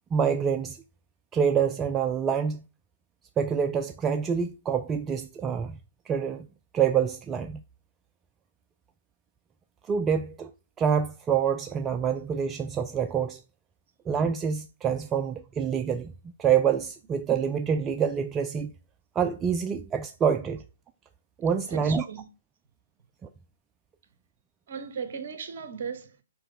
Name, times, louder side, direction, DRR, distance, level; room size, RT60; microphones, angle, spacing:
voice 1, 0.1-0.8 1.3-2.6 3.4-5.8 6.1-6.5 6.7-7.6 9.9-10.5 10.8-13.4 14.1-16.1 16.4-18.7 19.2-20.6 21.4-22.0 23.2-23.3, right 7 dB, 15° right, 0.3 m, -26 dB
voice 2, 21.7-22.3 24.7-26.2, right 6 dB, 50° right, 1.1 m, -37 dB
4.9 x 4.6 x 4.6 m
figure-of-eight pair, 130°, 0 cm